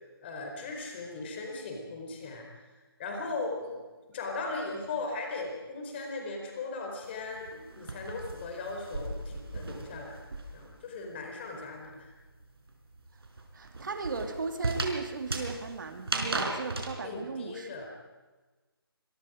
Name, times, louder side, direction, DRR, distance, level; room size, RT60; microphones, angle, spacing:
voice 1, 0.2-2.5 3.0-3.8 4.1-10.2 10.5-12.1 17.0-17.9, left 3 dB, 25° left, 2 dB, 4.3 m, -38 dB
sound 1, 7.0-10.8 11.1-16.9, right 2 dB, 75° right, 5.0 m, -36 dB
voice 2, 13.5-17.7, right 4 dB, 50° right, 6 dB, 2.5 m, -36 dB
25.5 x 22.5 x 5.1 m, 1.3 s
figure-of-eight pair, 165°, 13 cm